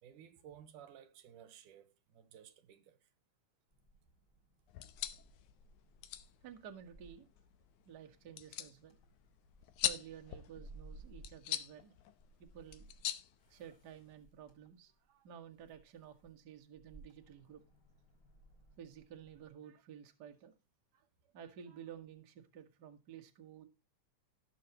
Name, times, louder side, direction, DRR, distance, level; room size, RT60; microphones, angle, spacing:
voice 1, 0.0-3.1, right 9 dB, 85° right, 2.8 m, -57 dB
sound 1, 3.7-19.5, right 2 dB, 30° left, 6.2 m, -61 dB
sound 2, 4.7-14.1, left 13 dB, 75° left, 2.3 m, -44 dB
voice 2, 6.4-7.3 7.8-9.0 9.8-12.0 12.4-12.9 13.5-17.6 18.8-20.5 20.9-21.1 21.3-23.7, right 9 dB, 40° right, 1.7 m, -53 dB
18.0 x 7.0 x 2.9 m
omnidirectional pair, 3.6 m